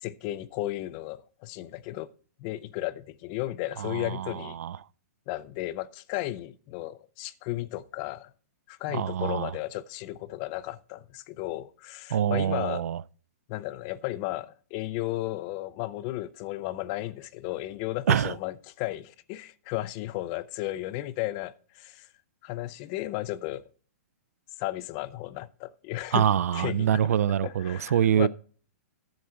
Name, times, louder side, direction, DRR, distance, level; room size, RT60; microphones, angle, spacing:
voice 1, 0.0-2.1 2.4-4.6 5.3-8.3 8.7-12.8 13.5-22.1 22.4-23.6 24.6-26.3 26.5-27.0 27.4-28.3, left 16 dB, 25° left, 0.4 m, -34 dB
voice 2, 3.8-4.8 8.9-9.5 12.1-13.0 18.1-18.3 26.1-28.3, right 9 dB, 75° right, 0.4 m, -25 dB
10.5 x 7.6 x 4.4 m
hypercardioid pair, 165°, 8 cm